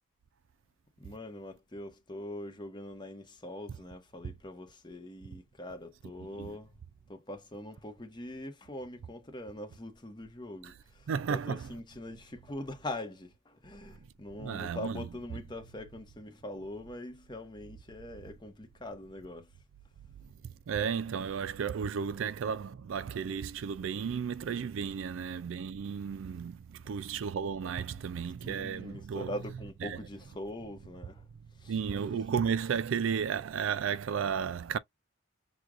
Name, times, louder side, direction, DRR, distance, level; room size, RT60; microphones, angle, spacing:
voice 1, 1.0-6.7 7.1-19.5 28.4-31.3 31.6-32.0, left 1 dB, 20° left, 0.9 m, -43 dB
voice 2, 11.1-11.7 14.4-15.1 20.4-29.4 29.8-30.0 31.7-34.8, right 7 dB, 70° right, 0.3 m, -33 dB
6.1 x 2.4 x 2.5 m
head